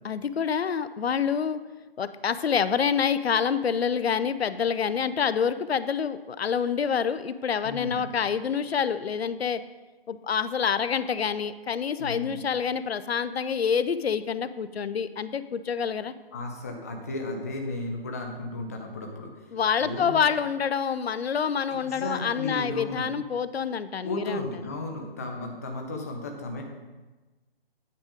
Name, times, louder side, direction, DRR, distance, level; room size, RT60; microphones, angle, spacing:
voice 1, 0.0-1.6 2.0-9.6 10.1-16.1 19.5-24.5, left 7 dB, 85° left, 14 dB, 0.6 m, -27 dB
voice 2, 7.6-8.1 12.0-12.3 16.3-19.3 19.8-20.2 21.7-23.1 24.0-26.6, left 2 dB, 15° left, 2 dB, 0.5 m, -34 dB
9.0 x 5.1 x 5.0 m, 1.2 s
figure-of-eight pair, 155°, 30 cm